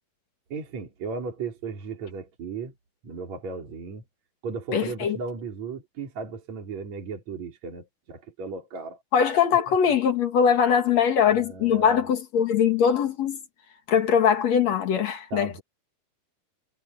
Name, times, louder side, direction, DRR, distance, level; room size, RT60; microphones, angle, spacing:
voice 1, 0.5-2.7 3.0-4.0 4.4-9.0 9.7-9.9 11.3-12.1 15.3-15.6, right 4 dB, 50° right, 5.0 m, -36 dB
voice 2, 4.7-5.2 9.1-13.4 13.9-15.6, left 7 dB, 55° left, 2.6 m, -22 dB
omnidirectional pair, 4.3 m